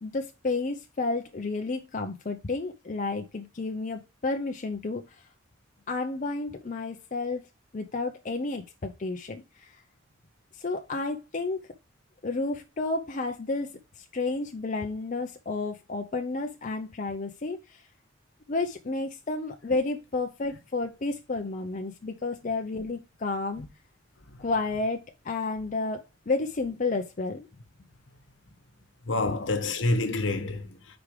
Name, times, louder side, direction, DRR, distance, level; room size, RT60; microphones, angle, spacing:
voice 1, 0.0-5.2 5.9-7.5 7.7-9.7 10.5-11.7 12.2-17.8 18.5-23.6 24.4-27.5, left 3 dB, 40° left, 0.6 m, -31 dB
voice 2, 29.0-31.0, left 2 dB, 70° left, 1.2 m, -28 dB
5.1 x 4.9 x 4.8 m
head